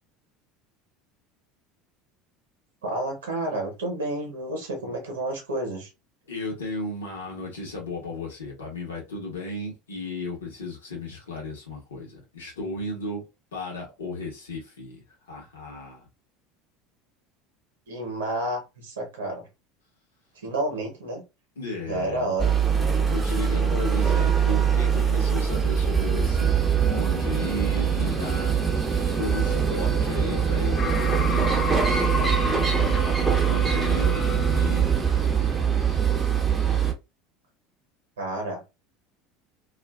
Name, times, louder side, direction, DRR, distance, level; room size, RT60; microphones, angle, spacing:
voice 1, 2.8-5.9 17.9-19.5 20.3-21.2 21.8-22.6 38.2-38.6, right 2 dB, 80° right, 0.9 m, -30 dB
voice 2, 6.3-13.2 13.5-15.0 15.3-16.1 21.6-22.3 23.1-28.9 29.1-33.1 33.5-34.9, left 2 dB, 85° left, 1.0 m, -34 dB
sound 1, 22.4-36.9, right 7 dB, 15° right, 0.7 m, -23 dB
sound 2, 30.8-35.0, left 4 dB, 35° left, 0.5 m, -32 dB
2.5 x 2.4 x 2.3 m
hypercardioid pair, 75°, 0 cm